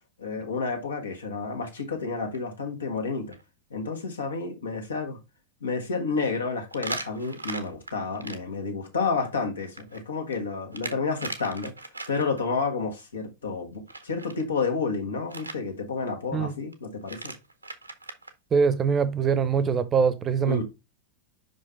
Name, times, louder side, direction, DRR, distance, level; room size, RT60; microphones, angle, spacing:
voice 1, 0.2-3.3 3.7-5.2 5.6-11.7 12.1-17.3 20.4-20.6, left 4 dB, 70° left, 1.6 m, -30 dB
sound 1, 1.8-2.0 2.3-2.4 3.0-3.1 3.3-3.4 6.7-8.4 9.6-12.4 13.9-14.4 15.3-15.6 16.7-16.8 17.0-18.3, right 2 dB, 85° right, 0.9 m, -38 dB
voice 2, 18.5-20.6, right 6 dB, 25° right, 0.8 m, -23 dB
5.6 x 5.2 x 3.3 m
figure-of-eight pair, 90°, 0 cm